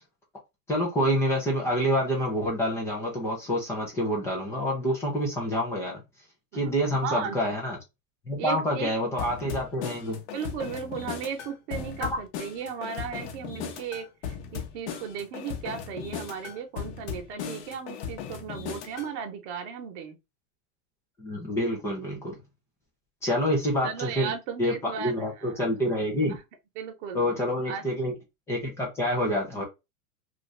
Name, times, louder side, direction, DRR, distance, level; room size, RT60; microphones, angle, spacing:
voice 1, 0.7-6.0 6.5-7.8 8.3-10.2 12.0-12.2 21.2-22.4 23.2-24.3 24.6-26.4 27.1-28.1 28.5-29.6, equal, 5° left, 0.3 m, -27 dB
voice 2, 7.0-7.4 8.4-8.9 10.1-14.1 14.5-20.2 23.8-25.6 26.3-26.4 26.8-27.3 27.6-27.8, right 7 dB, 50° right, 0.9 m, -36 dB
sound 1, 9.2-19.1, left 7 dB, 50° left, 0.9 m, -37 dB
2.6 x 2.5 x 3.1 m
supercardioid pair, 140°, 45 cm